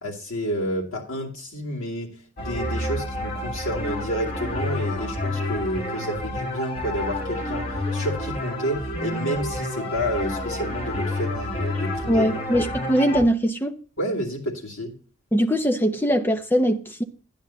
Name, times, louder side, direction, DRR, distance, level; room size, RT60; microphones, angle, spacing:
voice 1, 0.0-12.3 14.0-14.9, equal, 75° left, 2.7 m, -30 dB
sound 1, 2.4-13.2, left 1 dB, 45° left, 2.8 m, -29 dB
voice 2, 12.1-13.7 15.3-17.0, equal, 10° left, 0.8 m, -21 dB
11.5 x 10.5 x 2.8 m
head